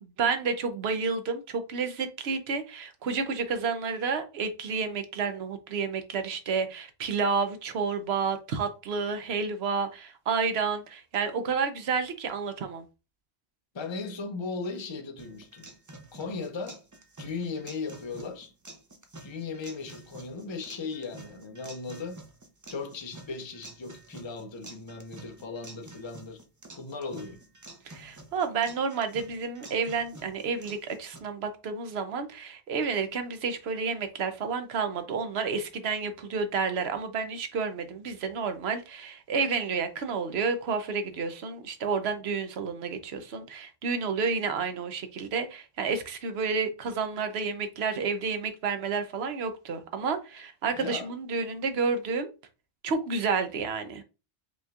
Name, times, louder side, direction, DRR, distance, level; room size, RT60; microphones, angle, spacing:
voice 1, 0.0-12.8 27.9-52.3 52.8-54.0, right 5 dB, 65° right, 0.9 m, -30 dB
voice 2, 13.7-15.7 16.1-16.8 17.2-18.5 19.2-22.2 22.7-26.4 26.8-27.4 50.8-51.1, left 4 dB, 30° left, 0.6 m, -37 dB
sound 1, 15.2-31.2, right 2 dB, 25° right, 0.4 m, -49 dB
5.2 x 3.1 x 2.4 m
omnidirectional pair, 1.2 m